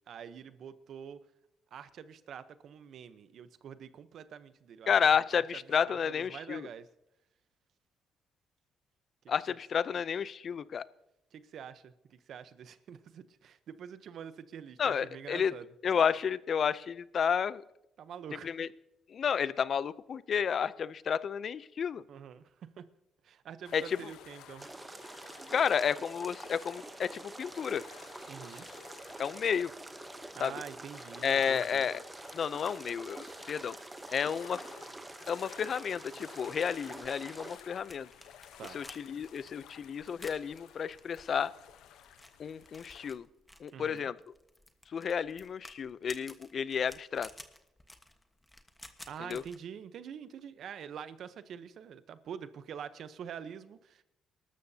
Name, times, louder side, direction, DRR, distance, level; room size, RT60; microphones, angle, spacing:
voice 1, 0.1-1.2 1.7-5.4 5.8-6.9 11.3-15.7 18.0-18.6 22.1-22.8 23.2-24.7 28.3-28.7 30.3-31.9 38.6-38.8 43.7-44.1 49.0-54.0, right 8 dB, 65° right, 13 dB, 0.8 m, -46 dB
voice 2, 4.9-6.7 9.3-10.8 14.8-15.5 15.8-17.6 18.4-18.7 19.1-22.0 23.7-24.0 25.5-27.8 29.2-29.7 30.4-30.5 31.2-32.0 32.3-33.8 34.1-34.7 35.3-38.1 38.7-41.5 42.4-43.3 43.6-44.2 44.9-47.3 49.2-49.4, left 7 dB, 55° left, 18 dB, 0.5 m, -31 dB
sound 1, 23.6-43.1, left 10 dB, 90° left, 0.9 m, -55 dB
sound 2, 24.6-37.6, right 2 dB, 15° right, 0.9 m, -47 dB
sound 3, 36.6-49.6, left 1 dB, 10° left, 1.3 m, -54 dB
22.5 x 13.0 x 2.8 m, 0.84 s
cardioid pair, 90°, 0 cm